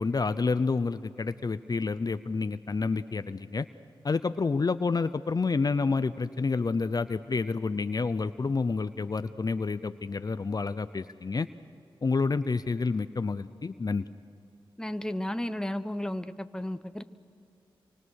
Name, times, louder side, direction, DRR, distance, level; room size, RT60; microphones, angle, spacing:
voice 1, 0.0-3.7 4.0-11.5 12.0-14.0, left 4 dB, 45° left, 13 dB, 0.7 m, -29 dB
voice 2, 14.8-17.0, left 1 dB, 5° left, 11 dB, 1.0 m, -33 dB
26.0 x 24.5 x 6.5 m, 2.7 s
cardioid pair, 50°, 9 cm